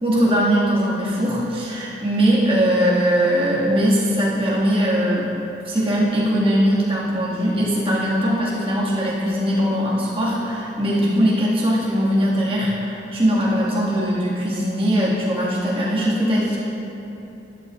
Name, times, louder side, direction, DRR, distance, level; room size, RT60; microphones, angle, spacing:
voice 1, 0.0-5.4 5.6-16.6, equal, 30° right, -7 dB, 2.0 m, -20 dB
12.0 x 11.5 x 2.5 m, 3.0 s
head